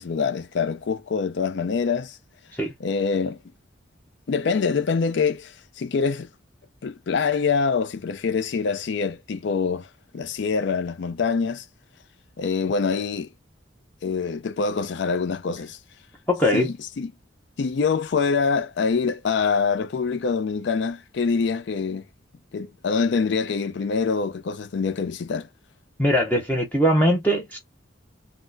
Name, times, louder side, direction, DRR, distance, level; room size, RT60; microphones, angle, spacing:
voice 1, 0.0-2.2 2.8-3.4 4.3-6.3 6.8-9.9 10.1-11.7 12.4-13.3 14.0-15.8 16.5-17.1 17.6-22.0 22.5-25.5, left 5 dB, 60° left, 0.4 m, -25 dB
voice 2, 16.3-16.7 26.0-27.6, equal, 10° left, 0.6 m, -21 dB
4.2 x 2.0 x 2.5 m
head